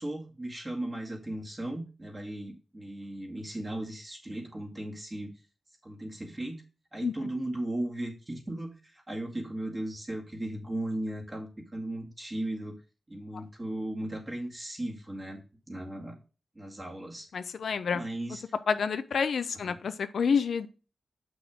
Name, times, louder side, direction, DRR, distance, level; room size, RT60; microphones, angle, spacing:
voice 1, 0.0-5.3 5.8-6.6 6.9-12.8 13.1-16.2 16.6-17.3 17.9-18.4 19.7-19.8, right 1 dB, 25° right, 0 dB, 2.1 m, -36 dB
voice 2, 17.3-18.0 18.7-20.7, left 6 dB, 80° left, 10 dB, 0.6 m, -28 dB
7.6 x 6.1 x 3.5 m, 0.33 s
wide cardioid pair, 85°, 0 cm